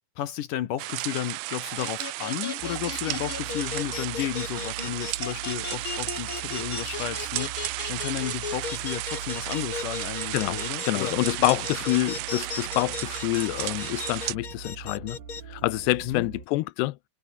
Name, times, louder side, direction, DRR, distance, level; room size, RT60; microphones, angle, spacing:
voice 1, 0.2-11.2 16.0-16.3, left 12 dB, 65° left, 2.3 m, -33 dB
sound 1, 0.8-14.4, right 21 dB, 85° right, 2.8 m, -34 dB
sound 2, 1.8-15.4, left 6 dB, 40° left, 2.3 m, -36 dB
sound 3, 2.6-16.5, right 7 dB, 55° right, 4.9 m, -42 dB
voice 2, 10.8-15.2 15.5-17.0, left 20 dB, 85° left, 2.9 m, -27 dB
omnidirectional pair, 4.9 m